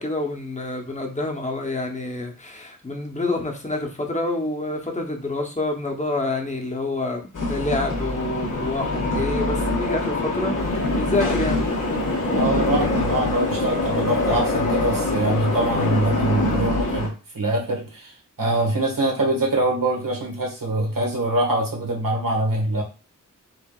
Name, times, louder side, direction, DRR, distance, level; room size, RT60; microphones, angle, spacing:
voice 1, 0.0-11.6, left 2 dB, 20° left, 1 dB, 0.9 m, -27 dB
sound 1, 7.3-17.1, left 2 dB, 70° left, 1.2 m, -24 dB
sound 2, 10.6-16.6, left 4 dB, 85° left, 0.9 m, -39 dB
voice 2, 12.3-18.1 18.4-22.8, right 1 dB, 85° right, -1 dB, 1.6 m, -24 dB
4.6 x 3.3 x 2.4 m, 0.33 s
wide cardioid pair, 80°, 33 cm